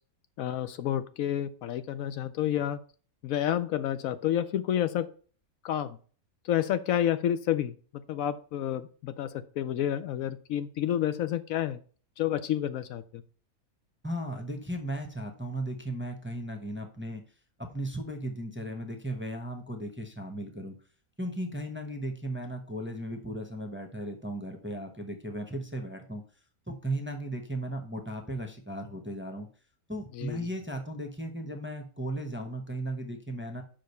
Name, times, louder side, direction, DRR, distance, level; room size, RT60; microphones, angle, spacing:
voice 1, 0.4-2.8 3.2-5.1 5.6-6.0 6.4-11.8 12.2-13.2 30.1-30.5, left 11 dB, 75° left, 13 dB, 1.0 m, -30 dB
voice 2, 14.0-17.2 17.6-20.8 21.2-26.2 26.7-29.5 29.9-33.6, right 1 dB, 10° right, 3 dB, 0.8 m, -36 dB
5.7 x 5.1 x 6.6 m, 0.41 s
omnidirectional pair, 1.5 m